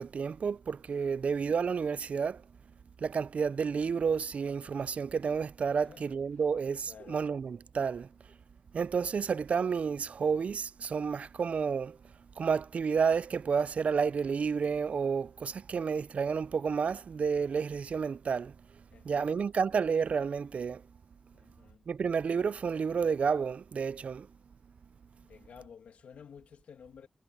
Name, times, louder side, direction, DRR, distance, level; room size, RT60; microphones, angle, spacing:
voice 1, 0.0-2.4 3.0-8.1 8.7-12.0 12.4-18.6 19.0-20.8 21.9-24.3, right 6 dB, 70° right, 0.4 m, -30 dB
voice 2, 5.8-6.2 6.8-7.2 18.9-19.5 21.3-21.9 25.2-27.1, left 7 dB, 90° left, 2.4 m, -53 dB
cardioid pair, 45°, 2 cm